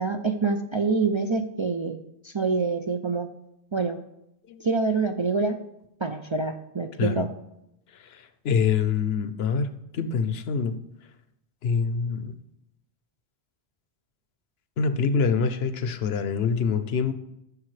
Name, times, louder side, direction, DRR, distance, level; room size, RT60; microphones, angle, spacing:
voice 1, 0.0-2.0 2.2-3.3 3.7-4.0 4.6-5.6 6.0-7.3, right 4 dB, 35° right, 4 dB, 0.5 m, -26 dB
voice 2, 8.0-10.8 11.6-12.3 14.8-17.1, left 5 dB, 75° left, 11 dB, 1.0 m, -25 dB
14.5 x 7.1 x 3.3 m, 0.84 s
omnidirectional pair, 1.1 m